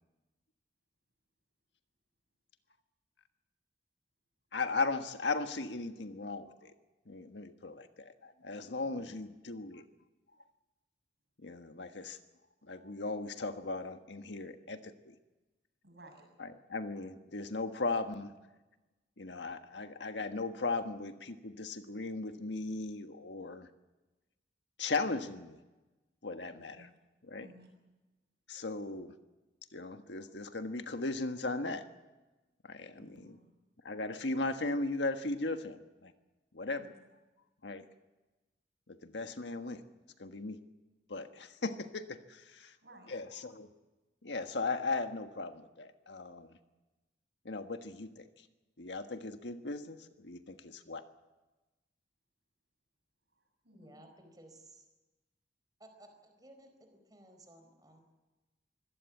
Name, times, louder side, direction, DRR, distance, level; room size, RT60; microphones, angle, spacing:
voice 1, 4.5-6.7 7.1-9.8 11.4-12.2 12.6-15.1 16.4-18.3 19.2-23.7 24.8-25.6 26.2-26.9 27.3-27.5 28.5-29.1 29.7-31.8 32.6-33.4 33.8-36.1 36.5-36.8 37.6-37.8 38.9-39.8 40.2-40.6 41.1-42.7 43.1-43.7 44.2-46.6 47.4-48.4 48.8-51.0, left 3 dB, 80° left, 7 dB, 1.5 m, -37 dB
voice 2, 8.8-9.2 15.8-16.2 26.7-27.0 27.4-27.8 33.0-33.5 36.8-37.0 42.6-43.2 53.3-53.9, right 1 dB, 65° right, 3 dB, 7.3 m, -58 dB
voice 3, 53.7-54.9 55.8-58.0, right 1 dB, 20° right, 5 dB, 4.5 m, -57 dB
25.0 x 17.0 x 8.5 m, 1.1 s
head